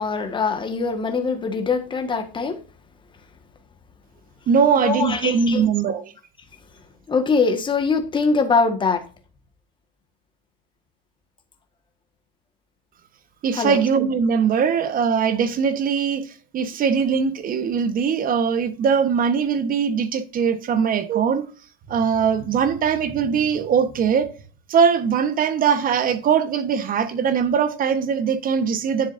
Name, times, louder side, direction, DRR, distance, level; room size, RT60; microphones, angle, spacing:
voice 1, 0.0-2.6 4.8-5.7 7.1-9.0 13.5-13.8 20.7-20.8, left 4 dB, 15° left, 1.6 m, -22 dB
voice 2, 4.5-6.1 13.4-21.5 21.9-24.3 24.7-29.1, right 6 dB, 30° right, 1.2 m, -21 dB
10.0 x 7.3 x 2.6 m
supercardioid pair, 135°, 30 cm